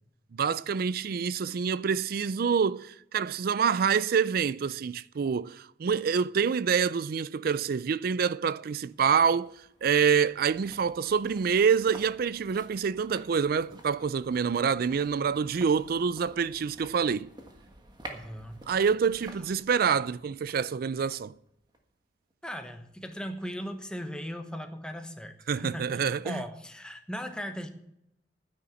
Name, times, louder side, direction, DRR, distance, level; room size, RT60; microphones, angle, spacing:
voice 1, 0.3-9.5 9.8-17.3 18.7-21.3 25.5-26.4, right 6 dB, 55° right, 0.4 m, -26 dB
sound 1, 8.8-22.0 22.3-22.4, right 1 dB, 25° right, 1.5 m, -51 dB
voice 2, 18.1-18.8 22.4-27.7, equal, 5° left, 1.0 m, -38 dB
9.8 x 9.6 x 7.1 m
head